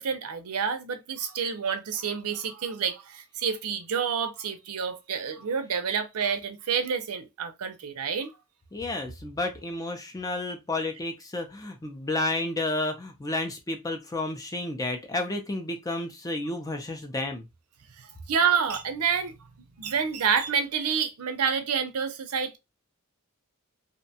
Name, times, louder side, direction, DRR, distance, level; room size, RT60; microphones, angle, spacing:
voice 1, 0.0-8.3 18.0-19.3 19.8-22.6, right 6 dB, 90° right, 0.5 m, -28 dB
voice 2, 8.7-17.5, left 2 dB, 15° left, 0.4 m, -31 dB
2.6 x 2.2 x 2.7 m
head